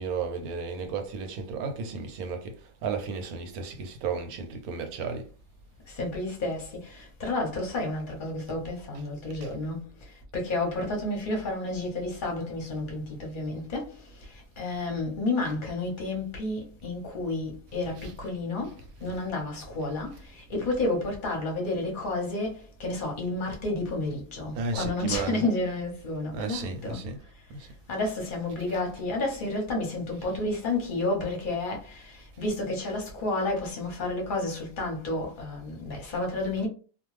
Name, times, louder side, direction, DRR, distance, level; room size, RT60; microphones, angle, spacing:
voice 1, 0.0-2.6 2.8-5.3 9.4-9.5 18.0-18.1 24.5-25.4 26.3-27.2 27.6-27.7 28.7-28.8, right 5 dB, 70° right, 1.0 m, -33 dB
voice 2, 5.9-9.8 10.3-13.9 14.6-27.0 27.9-36.7, left 2 dB, 40° left, 0.8 m, -31 dB
2.5 x 2.3 x 3.1 m
omnidirectional pair, 1.7 m